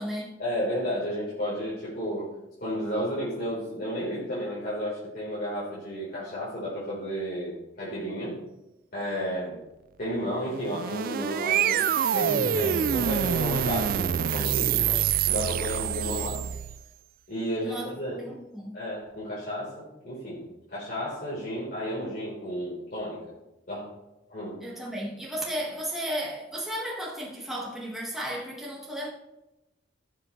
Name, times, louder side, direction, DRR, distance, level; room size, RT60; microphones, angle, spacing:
voice 1, 0.4-2.3 2.6-8.4 8.9-9.6 10.0-11.8 12.1-16.4 17.3-18.2 18.7-20.4 20.7-23.4 23.7-23.9 24.3-24.6, equal, 50° left, -9 dB, 4.1 m, -32 dB
sound 1, 10.5-16.8, right 9 dB, 50° right, 0.3 m, -26 dB
voice 2, 17.6-18.8 24.6-29.1, equal, ahead, -4 dB, 1.8 m, -34 dB
17.5 x 7.4 x 3.3 m, 0.94 s
head